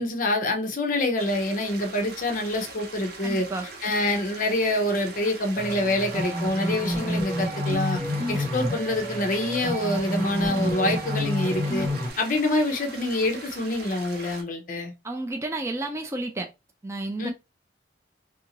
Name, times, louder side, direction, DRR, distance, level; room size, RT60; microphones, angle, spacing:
voice 1, 0.0-3.5 3.8-8.0 8.3-11.9 12.2-14.9 17.2-17.3, left 1 dB, 45° left, 0.7 m, -26 dB
sound 1, 1.2-14.4, right 3 dB, 60° right, 0.8 m, -42 dB
voice 2, 3.2-3.7 15.0-16.5 16.8-17.3, right 2 dB, 15° right, 0.4 m, -31 dB
sound 2, 5.6-12.1, left 1 dB, 40° right, 1.2 m, -29 dB
2.7 x 2.6 x 2.8 m
head